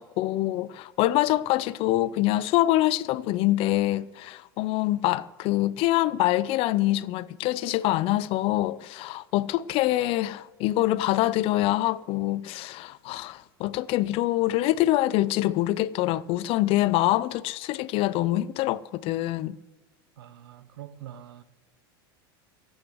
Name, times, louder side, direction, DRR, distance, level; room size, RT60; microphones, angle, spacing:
voice 1, 0.0-19.6, left 16 dB, 50° left, 0.5 m, -25 dB
voice 2, 20.2-21.4, right 11 dB, 80° right, 0.9 m, -44 dB
15.5 x 8.0 x 7.9 m
hypercardioid pair, 105°, 13 cm